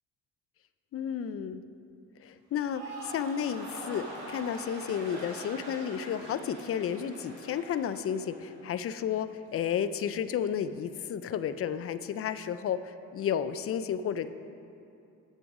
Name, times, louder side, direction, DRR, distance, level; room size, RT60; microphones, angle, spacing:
voice 1, 0.9-1.6 2.2-14.3, left 8 dB, 50° left, 12 dB, 0.4 m, -32 dB
sound 1, 2.5-8.9 9.2-9.7, right 2 dB, 90° right, 1.9 m, -44 dB
8.0 x 7.2 x 4.8 m, 2.6 s
cardioid pair, 90°, 30 cm